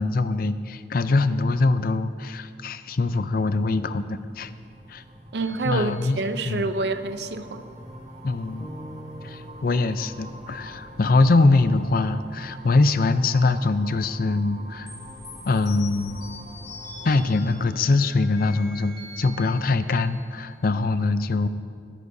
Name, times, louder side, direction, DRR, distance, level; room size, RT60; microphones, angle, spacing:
voice 1, 0.0-4.5 4.9-5.0 5.6-6.7 8.2-8.7 9.2-14.9 15.5-16.2 17.0-21.5, left 3 dB, 55° left, 12 dB, 0.5 m, -23 dB
sound 1, 2.9-17.3, right 1 dB, 50° right, 3.5 m, -44 dB
sound 2, 5.3-6.9 14.9-20.6, left 2 dB, 30° left, 2.9 m, -44 dB
voice 2, 5.3-7.7, right 3 dB, 70° right, 10 dB, 0.6 m, -27 dB
sound 3, 8.6-12.7, right 1 dB, 15° left, 1.6 m, -47 dB
22.0 x 9.9 x 2.7 m, 2.2 s
head